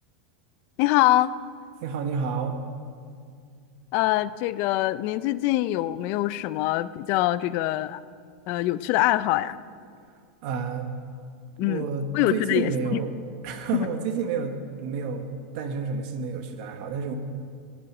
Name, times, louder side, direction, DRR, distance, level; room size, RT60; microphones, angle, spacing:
voice 1, 0.8-1.3 3.9-8.0 8.5-9.6 11.6-11.8 12.1-13.0 13.7-13.9, left 16 dB, 45° left, 16 dB, 0.4 m, -24 dB
voice 2, 1.8-2.6 10.4-10.9 11.6-13.2 13.4-14.5 14.8-15.3 15.5-17.2, right 5 dB, 55° right, 6 dB, 1.1 m, -29 dB
18.5 x 7.5 x 6.0 m, 2.2 s
supercardioid pair, 150°, 5 cm